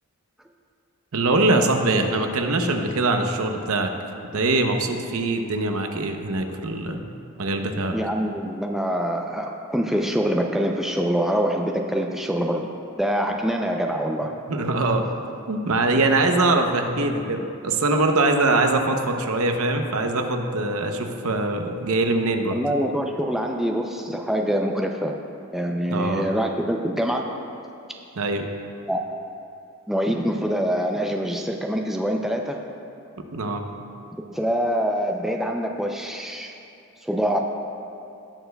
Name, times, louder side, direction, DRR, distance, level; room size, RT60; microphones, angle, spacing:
voice 1, 1.1-3.9 4.3-7.0 7.4-7.9 14.5-15.1 15.5-22.6 25.9-26.3 28.2-28.4 33.3-33.6, right 2 dB, 75° right, 5 dB, 0.7 m, -22 dB
voice 2, 7.9-12.7 13.0-14.3 22.5-25.1 25.5-27.4 28.9-29.0 29.9-32.6 34.3-36.5 37.0-37.4, equal, ahead, 2 dB, 0.4 m, -25 dB
17.5 x 6.8 x 2.2 m, 2.6 s
head